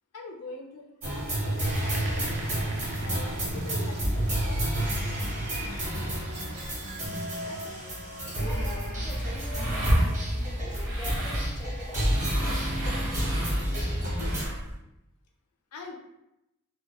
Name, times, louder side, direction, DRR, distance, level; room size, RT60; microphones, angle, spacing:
voice 1, 0.1-2.3 3.0-5.2 5.5-6.3 15.7-16.0, left 3 dB, 90° left, 2 dB, 0.4 m, -44 dB
sound 1, 1.0-14.4, right 1 dB, 35° right, 0.9 m, -30 dB
sound 2, 1.9-6.9, right 3 dB, 75° right, 0.4 m, -44 dB
voice 2, 7.4-7.9 8.2-10.2 10.5-12.2, left 1 dB, 25° left, -1 dB, 0.4 m, -44 dB
sound 3, 8.4-14.7, right 1 dB, 60° right, 0.8 m, -32 dB
2.2 x 2.1 x 2.8 m, 0.86 s
head